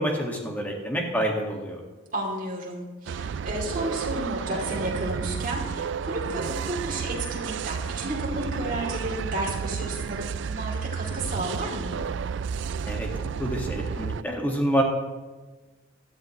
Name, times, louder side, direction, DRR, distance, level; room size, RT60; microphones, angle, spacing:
voice 1, 0.0-1.8 12.9-13.1 13.4-14.8, right 1 dB, 10° left, 0 dB, 1.8 m, -27 dB
voice 2, 2.1-12.0, right 1 dB, 40° right, -2 dB, 3.0 m, -32 dB
sound 1, 3.1-14.2, right 6 dB, 60° right, 0.3 m, -31 dB
16.5 x 13.0 x 3.1 m, 1.3 s
head